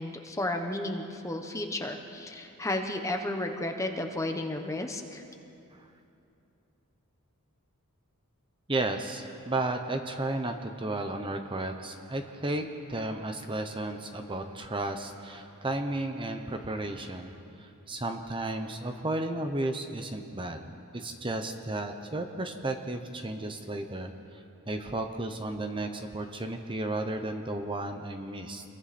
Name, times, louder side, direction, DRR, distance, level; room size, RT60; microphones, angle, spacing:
voice 1, 0.0-5.2, left 1 dB, 15° left, 4 dB, 1.2 m, -33 dB
voice 2, 8.7-28.6, right 2 dB, 20° right, 6 dB, 1.0 m, -33 dB
27.5 x 22.0 x 4.3 m, 2.7 s
head